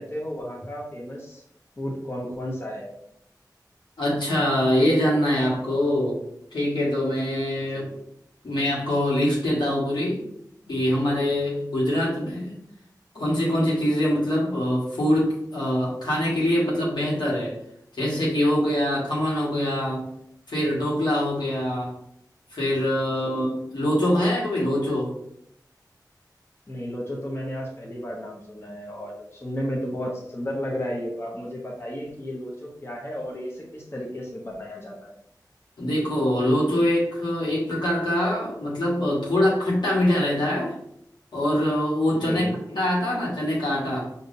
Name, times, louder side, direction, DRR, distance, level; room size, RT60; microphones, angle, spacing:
voice 1, 0.0-1.4 1.8-2.9 7.7-8.0 23.1-23.5 26.7-35.1 42.1-42.6, equal, 35° left, -3 dB, 1.0 m, -33 dB
voice 2, 4.0-6.2 6.5-7.8 8.4-10.2 10.7-12.6 13.1-17.5 18.0-20.1 20.5-21.9 22.5-25.1 35.8-40.8 41.3-44.1, left 1 dB, 90° left, -6 dB, 1.5 m, -24 dB
5.2 x 2.8 x 2.7 m, 0.73 s
wide cardioid pair, 55°, 7 cm